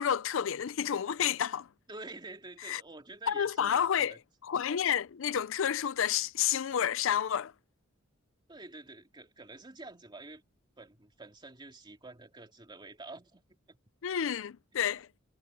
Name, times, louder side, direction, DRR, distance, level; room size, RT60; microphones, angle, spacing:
voice 1, 0.0-1.7 2.7-2.8 3.3-4.1 4.5-7.5 14.0-15.1, left 9 dB, 65° left, 0.5 m, -30 dB
voice 2, 1.9-4.2 8.5-10.4 10.8-13.4 13.7-13.8 14.8-15.0, right 2 dB, 20° right, 2.7 m, -48 dB
head